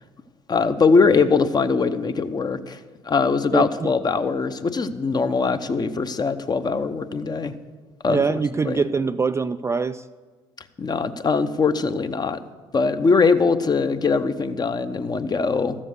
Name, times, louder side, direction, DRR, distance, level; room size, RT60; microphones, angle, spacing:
voice 1, 0.5-2.8 3.0-7.5 8.0-8.4 8.7-8.8 10.8-12.4 12.7-15.8, left 4 dB, 30° left, 10 dB, 0.8 m, -21 dB
voice 2, 3.5-3.9 5.3-5.4 8.1-10.0, right 5 dB, 20° right, 10 dB, 0.3 m, -24 dB
13.5 x 7.3 x 6.6 m, 1.4 s
hypercardioid pair, 60°, 15 cm